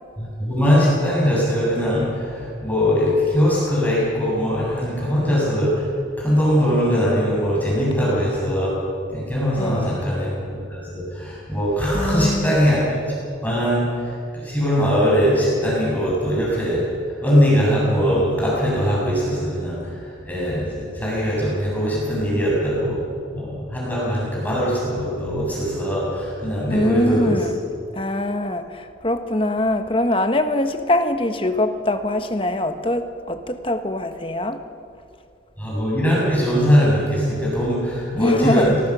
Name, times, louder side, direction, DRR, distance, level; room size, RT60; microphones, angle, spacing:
voice 1, 0.2-5.9 6.2-8.7 9.1-12.8 13.1-13.2 13.4-13.8 14.4-16.8 17.2-19.8 20.2-23.0 23.3-27.4 35.6-38.8, equal, 10° left, -6 dB, 7.6 m, -21 dB
voice 2, 9.6-10.0 11.9-12.6 26.7-27.6 27.9-34.6 38.2-38.8, left 1 dB, 30° left, 8 dB, 1.3 m, -23 dB
26.5 x 19.5 x 6.2 m, 2.4 s
head